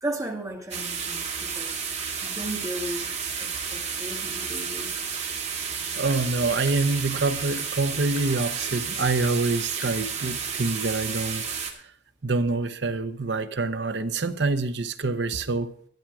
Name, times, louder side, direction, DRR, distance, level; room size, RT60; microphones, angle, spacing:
voice 1, 0.0-3.1 3.4-4.9, right 1 dB, 20° right, 2.1 m, -35 dB
sound 1, 0.7-11.7, right 6 dB, 40° right, 2.0 m, -31 dB
voice 2, 6.0-11.4 12.2-15.7, right 3 dB, 80° right, 0.9 m, -26 dB
Tap, 6.1-6.2 6.7-6.8 7.6-7.7 8.2-8.3 9.2-9.4 9.8-10.0 11.0-11.1 11.6-11.7, left 4 dB, 90° left, 1.3 m, -45 dB
12.0 x 10.5 x 4.8 m
head